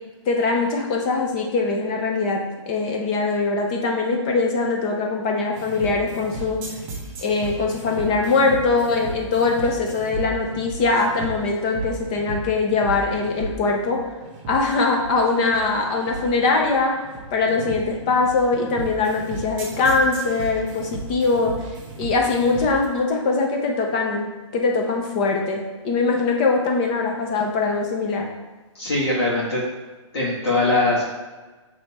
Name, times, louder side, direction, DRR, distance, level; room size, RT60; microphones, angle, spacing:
voice 1, 0.3-6.6 7.2-14.0 14.5-17.0 17.3-21.5 22.0-28.3, left 3 dB, 15° left, 1 dB, 0.5 m, -22 dB
sound 1, 5.6-22.8, right 3 dB, 20° right, 0.7 m, -35 dB
voice 2, 28.7-29.6 30.1-31.0, left 2 dB, 50° left, -7 dB, 1.8 m, -21 dB
6.8 x 3.4 x 4.1 m, 1.2 s
hypercardioid pair, 175°, 16 cm